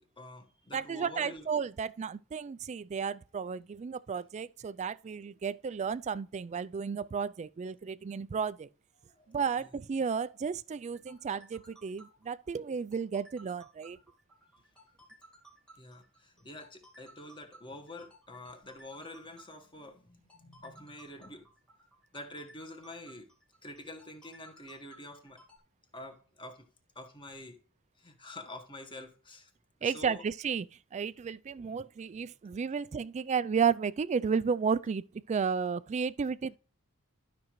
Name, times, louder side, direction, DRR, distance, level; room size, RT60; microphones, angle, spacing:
voice 1, 0.0-1.5 9.1-9.7 15.8-21.5 22.1-23.3 23.6-25.4 25.9-26.6 27.0-27.6 28.0-29.5 29.8-30.2, left 1 dB, 20° left, 1.6 m, -47 dB
voice 2, 0.7-8.7 9.3-14.0 29.8-30.7 30.9-36.6, right 6 dB, 30° right, 0.3 m, -33 dB
sound 1, 10.8-25.6, right 1 dB, 5° left, 1.8 m, -58 dB
12.5 x 6.1 x 3.1 m
head